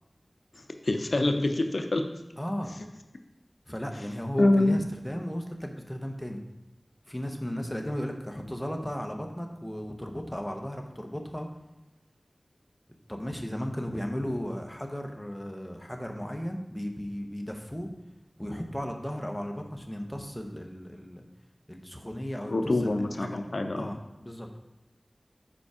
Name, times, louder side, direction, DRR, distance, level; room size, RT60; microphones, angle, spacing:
voice 1, 0.8-2.0 4.4-4.8 22.5-23.9, left 2 dB, 70° left, 6 dB, 0.6 m, -25 dB
voice 2, 2.4-2.7 3.7-6.4 7.1-11.5 13.1-17.9 18.4-21.2 21.7-23.4 23.8-24.5, equal, 10° left, 3 dB, 0.8 m, -35 dB
5.0 x 4.5 x 4.9 m, 1.0 s
wide cardioid pair, 60°, 0 cm